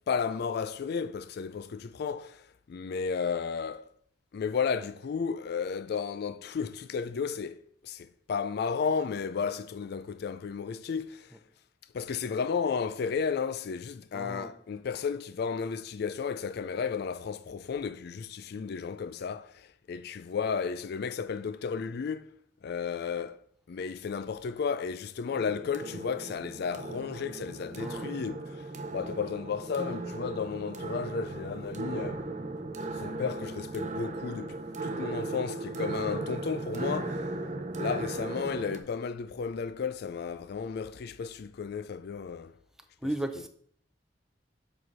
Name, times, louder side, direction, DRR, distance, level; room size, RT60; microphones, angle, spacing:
voice 1, 0.0-2.4 2.7-3.9 4.3-11.3 11.9-22.3 22.6-23.4 23.7-32.2 33.0-37.3 37.7-42.5, left 6 dB, 55° left, 0.4 m, -33 dB
voice 2, 14.1-14.5 27.8-28.1 43.0-43.5, right 1 dB, 5° right, 0.5 m, -34 dB
sound 1, 25.3-38.8, right 2 dB, 40° right, 0.7 m, -37 dB
6.3 x 4.9 x 5.5 m
head